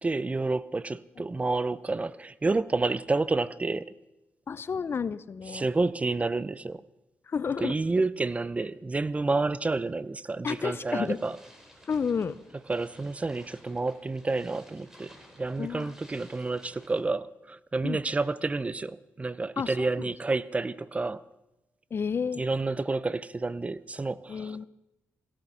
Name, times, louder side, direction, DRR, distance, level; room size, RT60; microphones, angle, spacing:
voice 1, 0.0-3.9 5.5-6.8 7.6-11.4 12.7-21.2 22.4-24.6, right 3 dB, 25° right, 0.6 m, -29 dB
voice 2, 4.5-5.7 7.3-7.7 10.4-11.2 11.9-12.4 15.6-15.9 17.8-18.0 19.6-20.1 21.9-22.4 24.3-24.7, left 6 dB, 45° left, 0.6 m, -31 dB
sound 1, 10.5-17.0, equal, 10° right, 3.8 m, -55 dB
17.0 x 13.5 x 5.6 m
cardioid pair, 70°, 5 cm